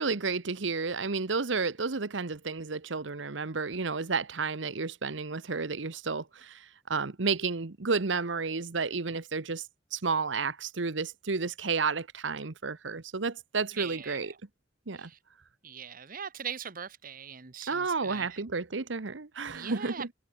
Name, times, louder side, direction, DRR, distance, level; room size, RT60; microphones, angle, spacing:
voice 1, 0.0-14.3 14.9-15.1 17.7-20.1, right 4 dB, 75° right, 1.1 m, -31 dB
voice 2, 13.8-14.2 14.9-15.2 15.6-18.4 19.5-20.1, right 7 dB, 50° right, 1.1 m, -41 dB
head